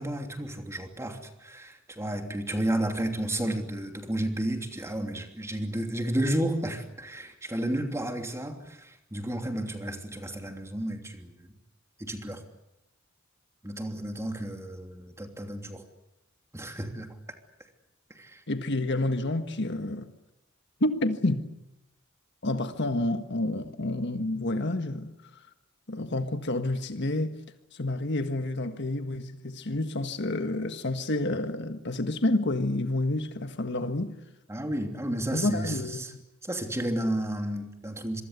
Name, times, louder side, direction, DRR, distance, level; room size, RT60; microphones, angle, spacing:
voice 1, 0.0-11.4 12.0-12.4 13.6-15.8 16.5-17.1 18.1-18.4 34.5-36.1 36.4-38.2, right 1 dB, 15° right, 3.0 m, -32 dB
voice 2, 18.5-20.1 20.8-21.5 22.4-25.4 25.9-27.4 27.7-34.1 35.3-36.2, left 2 dB, 60° left, 1.6 m, -29 dB
26.5 x 23.5 x 8.2 m
head